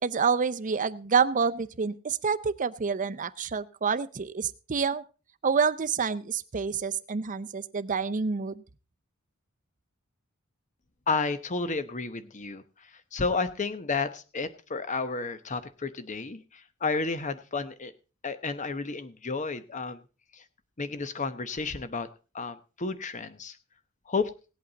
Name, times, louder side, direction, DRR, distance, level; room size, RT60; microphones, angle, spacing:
voice 1, 0.0-5.0 5.4-8.5, right 5 dB, 40° right, 14 dB, 0.6 m, -28 dB
voice 2, 11.1-12.6 13.1-16.4 16.8-17.9 18.2-20.0 20.8-22.1 22.3-23.5 24.1-24.3, left 4 dB, 35° left, 12 dB, 0.9 m, -31 dB
18.0 x 8.5 x 4.0 m, 0.34 s
head